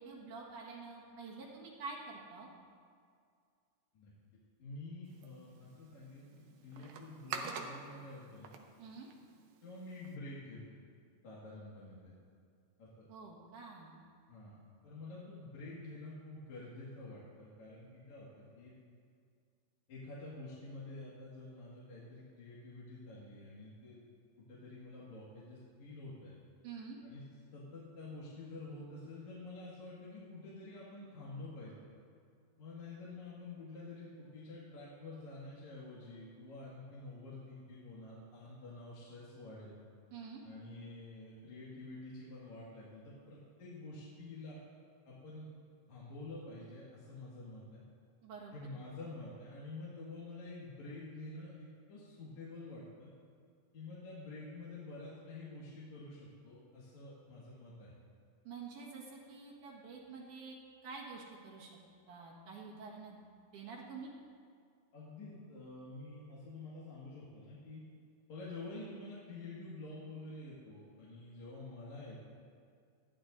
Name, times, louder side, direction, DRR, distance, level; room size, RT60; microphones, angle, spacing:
voice 1, 0.0-2.5 8.8-9.1 13.1-14.0 26.6-27.0 40.1-40.4 48.2-48.5 58.4-60.6 60.8-61.8 62.1-63.2 63.5-64.1, right 4 dB, 65° right, -3 dB, 2.8 m, -48 dB
voice 2, 4.6-8.5 9.6-10.8 11.2-12.1 12.8-13.1 14.3-14.6 14.8-18.7 19.9-24.0 24.4-26.3 27.0-27.2 27.5-31.7 32.6-39.8 40.4-44.6 45.1-45.5 45.9-47.8 48.5-53.1 53.7-57.9 64.9-67.8 68.3-72.2, left 2 dB, 55° left, -8 dB, 3.0 m, -48 dB
sound 1, 5.0-10.2, right 5 dB, 80° right, 2.6 m, -48 dB
19.5 x 13.5 x 2.6 m, 2.2 s
omnidirectional pair, 4.1 m